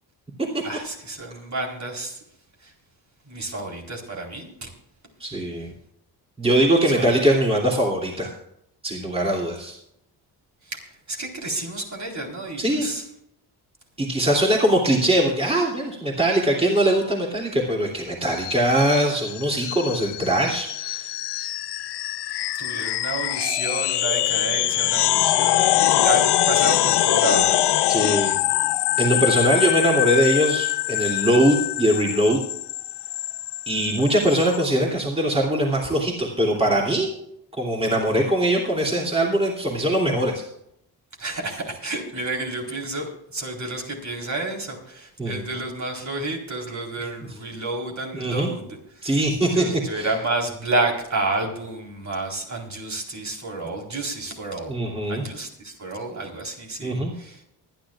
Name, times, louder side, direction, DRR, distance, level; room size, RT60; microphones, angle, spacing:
voice 1, 0.6-2.2 2.6-2.7 3.3-4.7 6.8-7.1 10.7-10.8 11.1-13.0 22.6-27.6 41.2-54.7 55.1-57.4, right 2 dB, 45° right, 0 dB, 4.2 m, -30 dB
voice 2, 5.2-5.7 6.4-8.3 8.8-9.8 12.6-12.9 14.0-21.1 27.9-28.4 29.0-32.4 33.7-37.1 37.6-40.4 45.2-45.4 48.1-48.5 49.0-50.1 54.7-55.2 56.8-57.1, right 1 dB, 15° right, -2 dB, 3.0 m, -21 dB
sound 1, 18.4-34.6, left 14 dB, 80° left, 0.6 m, -23 dB
24.0 x 10.5 x 2.5 m, 0.75 s
cardioid pair, 95°, 40 cm